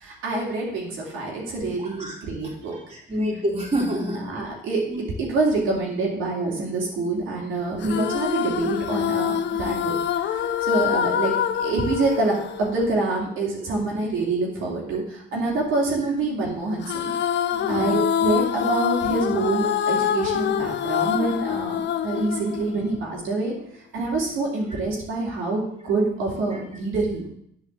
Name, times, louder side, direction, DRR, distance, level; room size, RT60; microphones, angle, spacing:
voice 1, 0.0-2.8 4.2-17.1 17.4-27.3, right 3 dB, 85° right, -3 dB, 2.7 m, -26 dB
voice 2, 1.8-2.2 2.9-4.2 4.9-5.0 17.5-17.9, equal, 30° right, -3 dB, 3.3 m, -27 dB
sound 1, 7.8-13.3 16.8-23.2, left 9 dB, 60° left, 0.6 m, -25 dB
8.2 x 4.9 x 7.4 m, 0.70 s
cardioid pair, 90°, 20 cm